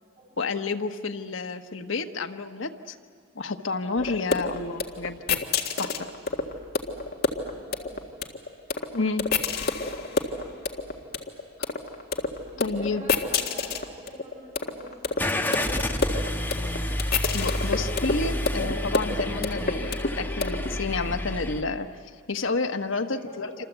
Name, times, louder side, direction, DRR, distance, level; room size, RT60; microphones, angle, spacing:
voice 1, 0.4-3.0 3.3-5.4 5.8-5.9 8.9-9.3 12.6-13.1 17.3-21.9 22.3-23.5, left 3 dB, 75° left, 6 dB, 1.2 m, -30 dB
sound 1, 4.0-20.8, left 4 dB, 55° left, 1.7 m, -28 dB
voice 2, 7.5-8.0 9.8-10.5 12.5-16.3 23.0-23.6, left 1 dB, 40° right, -5 dB, 8.0 m, -47 dB
Car / Engine starting, 15.2-21.6, left 1 dB, 10° left, 1.2 m, -29 dB
27.5 x 26.5 x 8.1 m, 2.1 s
head